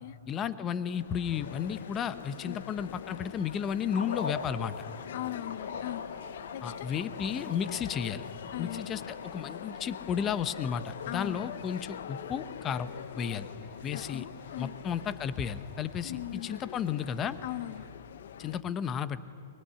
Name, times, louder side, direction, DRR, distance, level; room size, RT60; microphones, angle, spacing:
voice 1, 0.3-4.9 6.6-8.2 8.6-12.9 13.2-13.5 13.8-14.2 14.6-17.4 18.4-19.2, left 8 dB, 20° left, 14 dB, 0.8 m, -33 dB
sound 1, 0.8-18.6, left 9 dB, 65° left, 0.7 m, -45 dB
sound 2, 1.2-17.9, right 1 dB, 20° right, 4.0 m, -61 dB
sound 3, 3.9-16.2, left 5 dB, 90° left, 2.2 m, -44 dB
voice 2, 5.1-6.0 6.5-6.9 8.5-8.9 11.1-11.5 13.9-14.7 15.0-15.1 16.0-16.5 17.4-17.8, left 14 dB, 45° left, 15 dB, 1.0 m, -39 dB
23.0 x 22.5 x 9.9 m, 2.7 s
hypercardioid pair, 165°, 0 cm